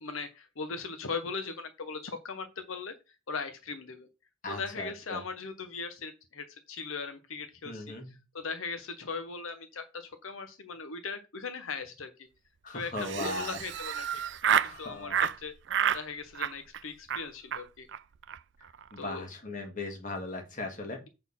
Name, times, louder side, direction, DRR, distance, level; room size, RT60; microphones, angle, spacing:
voice 1, 0.0-4.1 4.5-12.3 12.7-15.5 15.9-17.9 19.0-19.2, left 4 dB, 80° left, 8 dB, 0.9 m, -39 dB
voice 2, 4.4-5.2 7.7-8.1 12.6-13.6 14.6-15.3 18.9-21.1, left 2 dB, 40° left, 4 dB, 1.8 m, -38 dB
Laughter, 12.9-14.7 15.1-15.4 15.7-16.0 16.3-16.8 17.1-17.2 17.5-17.6 17.9-18.0 18.2-18.4 18.6-19.0, right 8 dB, 55° right, 0.4 m, -29 dB
7.8 x 4.2 x 5.5 m, 0.28 s
head